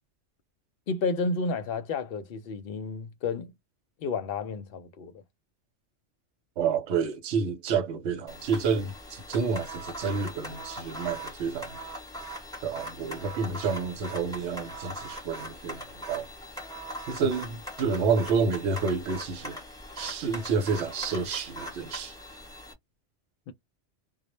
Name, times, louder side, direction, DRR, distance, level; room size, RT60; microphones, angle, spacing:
voice 1, 0.9-3.5 4.0-5.2 23.5-23.6, left 4 dB, 60° left, 0.7 m, -31 dB
voice 2, 6.6-11.8 12.6-16.3 17.1-19.6 20.0-22.1, right 5 dB, 80° right, 1.0 m, -29 dB
sound 1, 8.3-22.7, equal, 5° left, 0.8 m, -41 dB
2.1 x 2.1 x 3.0 m
omnidirectional pair, 1.2 m